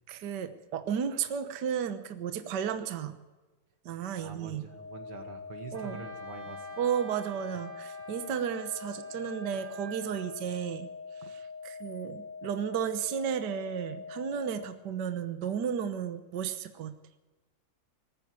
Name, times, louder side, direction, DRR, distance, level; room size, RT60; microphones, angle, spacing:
voice 1, 0.1-3.2 3.8-4.6 5.7-6.1 6.8-10.9 11.2-17.0, right 8 dB, 60° right, 9 dB, 1.5 m, -33 dB
voice 2, 4.2-6.7, right 4 dB, 85° right, 5 dB, 3.1 m, -45 dB
sound 1, 4.7-14.7, left 5 dB, 55° left, 8.9 m, -44 dB
Wind instrument woodwind instrument, 5.7-10.4, right 1 dB, 40° right, 4.2 m, -49 dB
19.5 x 14.5 x 9.5 m, 1.2 s
omnidirectional pair, 2.3 m